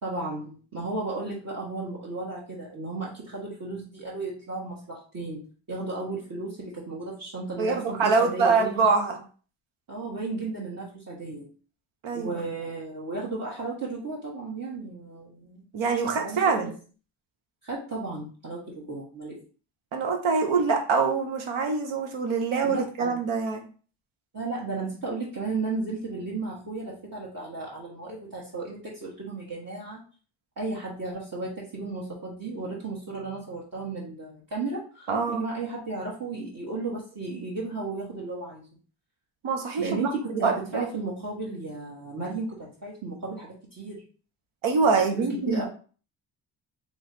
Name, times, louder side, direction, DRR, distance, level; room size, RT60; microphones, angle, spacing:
voice 1, 0.0-8.9 9.9-11.5 12.1-15.7 16.2-16.7 17.6-19.4 22.6-23.2 24.3-30.0 30.6-38.7 39.8-44.0 44.9-45.7, right 3 dB, 45° right, -7 dB, 1.6 m, -34 dB
voice 2, 7.6-9.2 12.0-12.4 15.7-16.7 19.9-23.6 35.1-35.4 39.4-39.9 40.3-40.8 44.6-45.6, right 4 dB, 80° right, 5 dB, 1.0 m, -24 dB
3.2 x 3.2 x 4.0 m, 0.39 s
cardioid pair, 65°, 47 cm